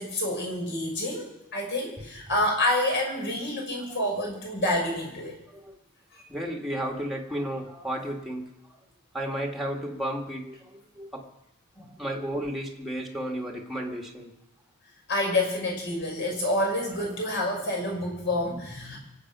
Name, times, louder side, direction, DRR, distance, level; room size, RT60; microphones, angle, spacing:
voice 1, 0.0-5.3 6.1-6.2 11.8-11.9 15.1-19.0, left 1 dB, 50° left, 0 dB, 5.7 m, -28 dB
voice 2, 6.3-8.8 9.1-11.3 12.0-14.3, right 1 dB, ahead, 1 dB, 2.0 m, -33 dB
24.5 x 8.7 x 6.1 m, 0.88 s
head